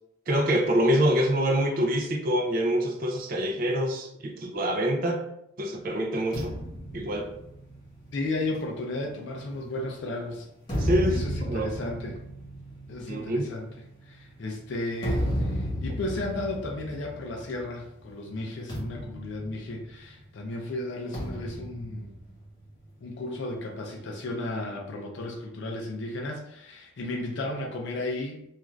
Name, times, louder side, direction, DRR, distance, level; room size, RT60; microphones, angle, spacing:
voice 1, 0.3-5.2 5.6-6.5 6.9-7.3 10.8-11.7 13.1-13.5, equal, 45° right, 2 dB, 0.4 m, -26 dB
sound 1, 6.3-9.9 10.4-17.9 18.1-18.3 18.7-20.3 21.1-22.9, equal, 20° left, 1.0 m, -34 dB
voice 2, 8.1-12.2 12.9-13.7 14.1-22.1 23.0-28.4, left 2 dB, 60° left, 0 dB, 0.4 m, -34 dB
2.4 x 2.4 x 3.1 m, 0.79 s
head